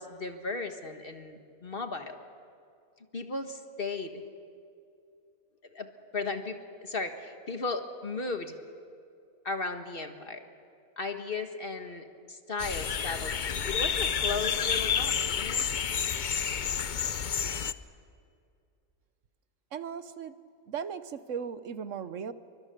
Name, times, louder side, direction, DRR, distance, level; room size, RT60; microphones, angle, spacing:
voice 1, 0.0-2.2 3.1-4.3 5.7-5.9 6.1-8.6 9.4-10.4 11.0-15.6, left 3 dB, 35° left, 6 dB, 1.6 m, -36 dB
sound 1, 12.6-17.7, left 7 dB, 50° left, 0.5 m, -30 dB
voice 2, 19.7-20.3 20.7-22.3, right 7 dB, 55° right, 13 dB, 1.2 m, -37 dB
29.5 x 24.5 x 6.8 m, 2.5 s
omnidirectional pair, 1.7 m